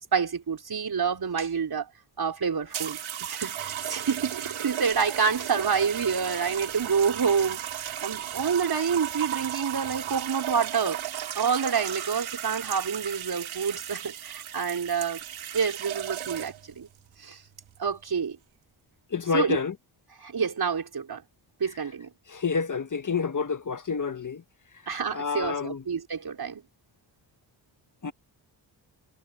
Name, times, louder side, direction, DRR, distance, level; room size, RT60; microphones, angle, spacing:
voice 1, 0.1-1.9 2.2-7.6 8.0-11.0 11.3-15.2 15.5-16.9 17.2-17.4 17.8-18.4 19.3-19.6 20.2-21.2 21.6-22.1 24.9-26.6, right 6 dB, 50° right, 5.0 m, -28 dB
sound 1, 2.7-16.7 17.6-17.9, right 11 dB, 80° right, 3.9 m, -35 dB
voice 2, 19.1-19.7 22.3-24.4 25.1-25.8 28.0-28.1, left 5 dB, 40° left, 1.6 m, -28 dB
cardioid pair, 60°, 46 cm